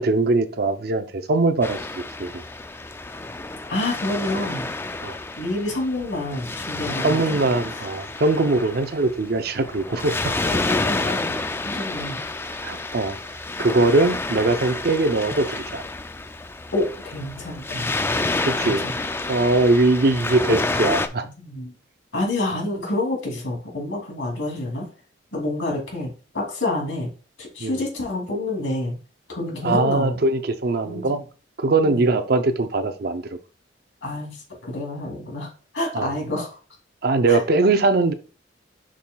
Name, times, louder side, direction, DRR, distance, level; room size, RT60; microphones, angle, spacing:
voice 1, 0.0-2.4 5.0-5.2 7.0-10.3 12.6-13.2 13.6-15.8 18.5-18.9 19.3-21.3 27.6-27.8 29.6-31.2 31.6-33.2 35.9-36.1 37.0-38.1, right 3 dB, 55° right, 0.6 m, -21 dB
Waves surf, 1.6-21.1, left 2 dB, 10° left, 0.3 m, -29 dB
voice 2, 3.7-4.7 5.4-7.4 7.7-7.8 10.4-11.3 11.6-12.2 16.7-17.9 18.6-19.0 21.2-21.7 22.1-24.9 25.3-27.1 27.4-29.0 29.3-30.2 30.8-31.2 31.8-32.1 34.0-35.5 35.7-36.6 37.3-37.4, left 2 dB, 80° left, 2.7 m, -28 dB
7.1 x 6.2 x 2.3 m
head